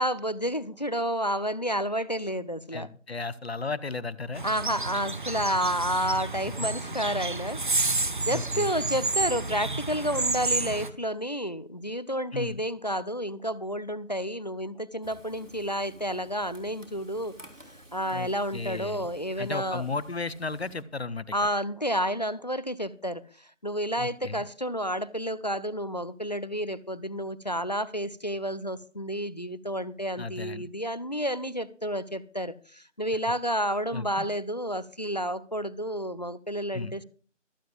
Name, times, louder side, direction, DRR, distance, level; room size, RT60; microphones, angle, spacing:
voice 1, 0.0-2.9 4.4-7.6 8.2-17.4 17.9-19.8 21.3-37.0, equal, 35° left, 17 dB, 0.6 m, -30 dB
voice 2, 2.7-4.4 8.3-8.7 12.3-12.6 18.1-19.1 19.4-21.3 24.0-24.4 30.2-30.7 33.9-34.3 36.7-37.0, left 4 dB, 55° left, 16 dB, 0.9 m, -34 dB
sound 1, 4.3-10.9, right 3 dB, 40° right, 1.0 m, -30 dB
Frying (food), 15.0-20.8, equal, 90° right, 3.7 m, -53 dB
24.5 x 9.1 x 2.3 m, 0.42 s
figure-of-eight pair, 160°, 37 cm